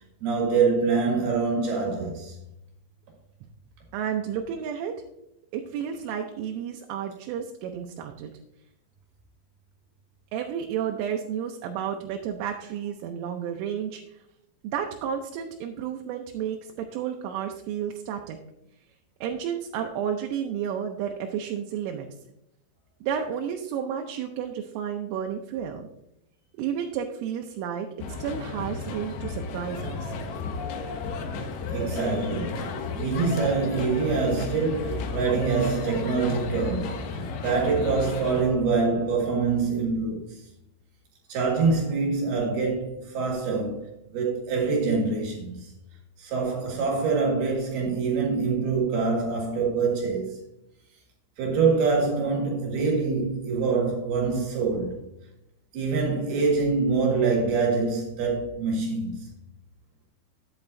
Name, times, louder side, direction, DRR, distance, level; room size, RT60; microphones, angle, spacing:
voice 1, 0.2-2.3 31.7-40.5 41.3-43.8 44.1-45.7 46.2-50.4 51.4-55.0 55.7-59.3, right 4 dB, 60° right, 3.4 m, -25 dB
voice 2, 3.9-4.9 5.5-8.3 10.3-14.0 14.6-18.4 19.2-22.1 23.0-25.9 26.6-27.9 28.2-30.1, right 8 dB, 85° right, 3.2 m, -31 dB
sound 1, 28.0-38.4, left 4 dB, 85° left, 2.1 m, -33 dB
10.5 x 8.5 x 2.6 m
omnidirectional pair, 5.5 m